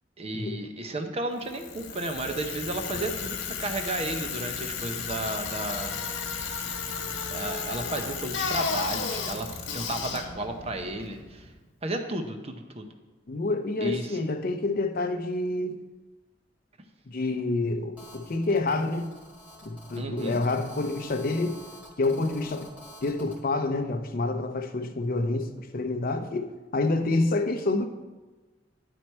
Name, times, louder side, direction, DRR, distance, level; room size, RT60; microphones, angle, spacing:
voice 1, 0.2-6.0 7.3-11.5 11.8-12.9 13.8-14.2 20.0-20.4, right 1 dB, 35° right, 5 dB, 0.7 m, -33 dB
Bicycle, 1.4-11.5, left 5 dB, 80° left, 1.2 m, -34 dB
voice 2, 13.3-15.8 17.1-19.1 19.6-21.6 22.0-22.7 23.0-27.9, left 2 dB, 50° left, 7 dB, 0.6 m, -28 dB
Telephone, 18.0-23.4, equal, 10° right, 1.7 m, -48 dB
11.0 x 4.6 x 4.4 m, 1.2 s
head